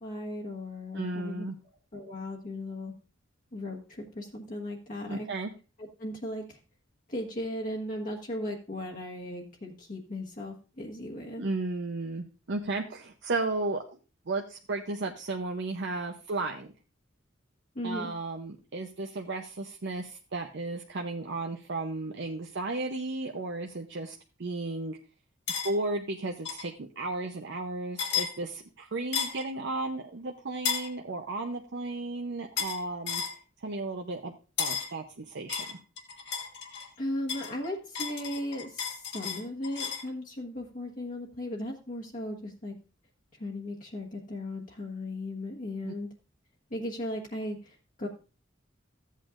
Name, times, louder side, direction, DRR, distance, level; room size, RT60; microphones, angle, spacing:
voice 1, 0.0-1.4 1.9-2.9 3.5-5.3 5.8-6.4 7.1-11.4 17.7-18.1 37.0-42.7 43.4-46.1 46.7-48.1, left 1 dB, 45° left, -2 dB, 1.3 m, -37 dB
voice 2, 0.9-1.6 5.1-5.5 11.4-13.8 14.3-16.7 17.8-25.0 25.6-33.2 33.6-34.3 34.6-35.8 45.8-45.9, right 2 dB, 60° right, 2 dB, 0.7 m, -34 dB
sound 1, 25.5-25.7 26.4-26.7 28.0-28.3 29.1-29.4 30.6-30.9 32.6-32.8 33.1-33.4 34.6-34.9 35.5-36.9 37.3-40.1, left 7 dB, 60° left, 1.7 m, -33 dB
14.5 x 8.4 x 2.5 m, 0.34 s
head